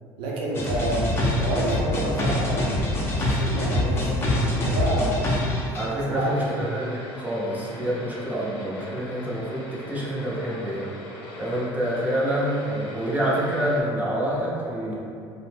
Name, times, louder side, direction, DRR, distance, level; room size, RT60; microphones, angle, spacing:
voice 1, 0.2-2.7 3.1-5.2 5.7-5.8 6.1-6.7 7.5-7.7, right 1 dB, 70° right, -4 dB, 0.6 m, -28 dB
sound 1, 0.5-5.9, left 1 dB, 25° left, 0.5 m, -25 dB
voice 2, 5.7-10.9 11.4-14.9, right 1 dB, 15° right, -6 dB, 0.6 m, -27 dB
sound 2, 6.1-13.8, left 2 dB, 70° left, 0.6 m, -41 dB
2.6 x 2.0 x 3.2 m, 2.5 s
cardioid pair, 115°, 10 cm